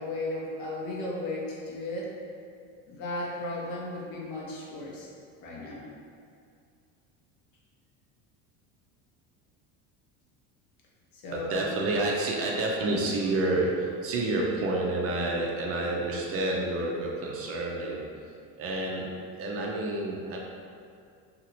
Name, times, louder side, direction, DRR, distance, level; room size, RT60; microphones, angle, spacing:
voice 1, 0.0-2.1 2.9-5.1 5.4-5.9 11.2-11.7 12.8-13.0, left 2 dB, 65° left, -4 dB, 0.8 m, -35 dB
voice 2, 11.3-18.1 18.6-19.1 19.4-20.4, right 2 dB, 40° right, -1 dB, 0.4 m, -29 dB
2.9 x 2.4 x 2.7 m, 2.3 s
supercardioid pair, 115°, 37 cm